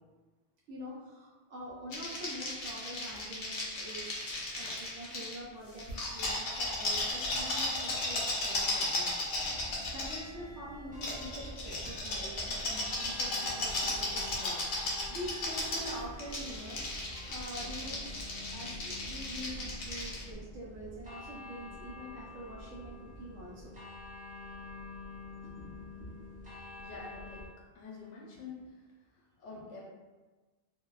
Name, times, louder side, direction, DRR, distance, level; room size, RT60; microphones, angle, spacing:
voice 1, 0.7-4.1 4.5-9.2 9.9-16.8 17.3-18.2 18.5-23.7 25.4-26.1, equal, 85° right, -6 dB, 0.9 m, -45 dB
sound 1, 1.9-5.4 5.8-10.2 11.0-20.2, left 2 dB, 60° left, 0.8 m, -35 dB
sound 2, 9.3-27.5, left 1 dB, 15° right, 0.3 m, -47 dB
voice 2, 26.8-27.4 27.7-28.7 29.4-29.8, left 4 dB, 85° left, -3 dB, 0.9 m, -46 dB
2.6 x 2.1 x 2.2 m, 1.2 s
omnidirectional pair, 1.2 m